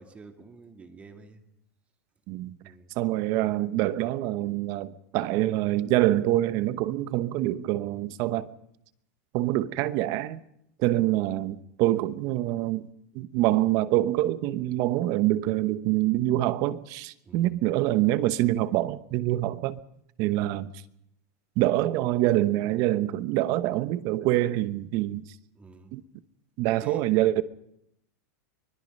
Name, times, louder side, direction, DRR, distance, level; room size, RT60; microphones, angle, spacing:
voice 1, 0.0-1.4 2.6-3.0 17.2-17.6 25.5-25.9 26.8-27.2, right 3 dB, 15° right, 2.1 m, -48 dB
voice 2, 3.0-8.5 9.3-10.4 10.8-12.9 13.1-19.8 20.2-20.7 21.6-25.2 25.9-26.0 26.6-27.4, right 15 dB, 40° right, 0.9 m, -25 dB
24.0 x 20.5 x 5.4 m
supercardioid pair, 155°, 9 cm